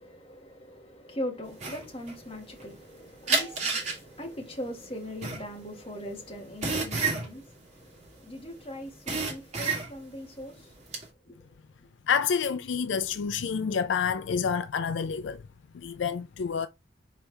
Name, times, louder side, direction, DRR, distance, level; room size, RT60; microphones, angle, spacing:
voice 1, 0.0-11.4, equal, 30° left, 1.9 m, -41 dB
sound 1, 1.6-2.9 3.3-8.5 8.8-10.2 10.6-11.0, right 4 dB, 35° right, 2.2 m, -30 dB
voice 2, 12.1-15.4 15.7-16.7, left 6 dB, 75° left, 0.4 m, -28 dB
5.1 x 4.5 x 4.1 m
head